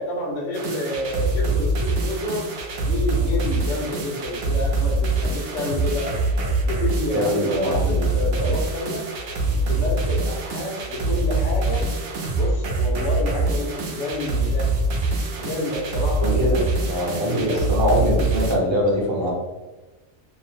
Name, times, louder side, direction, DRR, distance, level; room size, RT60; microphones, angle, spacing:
voice 1, 0.0-2.5 2.8-6.2 6.6-9.0 9.6-11.8 12.4-14.7 15.4-16.7 17.1-17.7, left 1 dB, 80° left, 0 dB, 1.0 m, -29 dB
sound 1, 0.5-18.5, right 2 dB, 65° right, 0.7 m, -24 dB
voice 2, 7.1-8.5 16.2-19.3, equal, 30° right, -4 dB, 0.7 m, -23 dB
2.7 x 2.0 x 3.1 m, 1.1 s
omnidirectional pair, 1.2 m